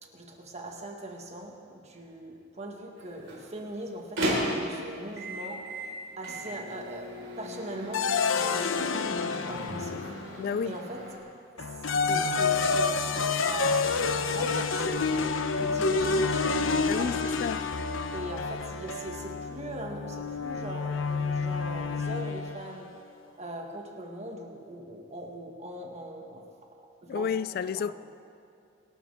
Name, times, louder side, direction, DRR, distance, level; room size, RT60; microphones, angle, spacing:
voice 1, 0.0-11.1 11.5-15.2 15.6-17.3 18.1-23.0 23.3-27.4 27.7-27.9, right 1 dB, 35° right, 1.7 m, -41 dB
Microwave oven, 3.0-11.2, equal, 75° right, 4.5 m, -36 dB
sound 1, 7.9-10.5 11.6-22.7, left 4 dB, 75° left, 0.8 m, -28 dB
voice 2, 10.4-10.8 16.9-17.7 27.1-27.9, left 6 dB, 50° left, 0.3 m, -31 dB
27.0 x 12.5 x 3.6 m
head